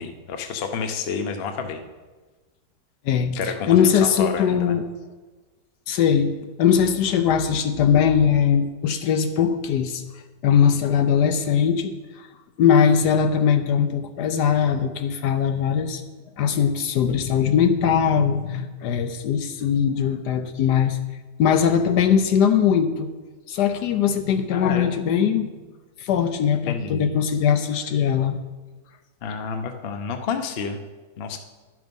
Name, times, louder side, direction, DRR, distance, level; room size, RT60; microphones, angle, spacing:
voice 1, 0.0-1.8 3.3-4.8 24.5-25.0 26.7-27.1 29.2-30.8 31.2-31.4, left 5 dB, 50° left, 6 dB, 0.8 m, -29 dB
voice 2, 3.1-4.9 5.9-10.0 10.4-12.3 12.6-16.0 16.4-21.0 21.4-23.1 23.5-25.5 26.0-28.4, left 7 dB, 75° left, 8 dB, 1.2 m, -20 dB
11.5 x 6.2 x 5.3 m, 1.3 s
omnidirectional pair, 1.9 m